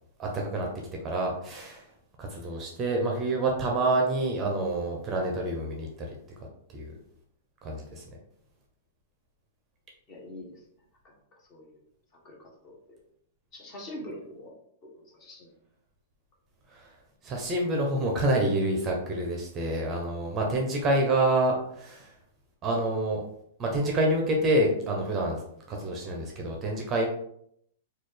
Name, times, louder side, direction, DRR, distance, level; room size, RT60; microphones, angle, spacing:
voice 1, 0.2-0.7 1.0-1.8 2.3-5.9 6.7-7.0 7.6-8.0 16.7-16.9 17.2-22.1 22.6-23.2 23.6-25.4 25.7-27.1, right 1 dB, 20° right, 0 dB, 0.6 m, -27 dB
voice 2, 10.1-10.6 11.3-11.8 12.2-12.7 13.5-15.5, left 1 dB, 25° left, -2 dB, 1.0 m, -44 dB
4.1 x 2.3 x 3.2 m, 0.71 s
supercardioid pair, 160°, 0 cm